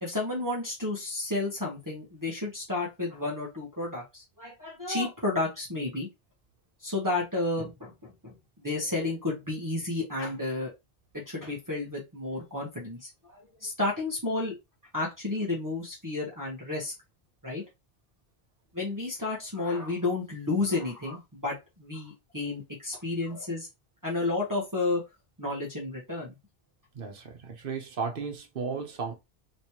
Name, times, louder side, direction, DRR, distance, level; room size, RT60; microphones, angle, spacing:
voice 1, 0.0-6.1 6.8-10.7 11.1-14.5 14.9-16.9 17.4-17.6 18.7-23.7 24.0-25.0 25.4-26.3, left 2 dB, 20° right, 1.1 m, -31 dB
voice 2, 26.9-29.1, right 5 dB, 65° right, 1.1 m, -34 dB
3.2 x 3.1 x 2.9 m
omnidirectional pair, 1.0 m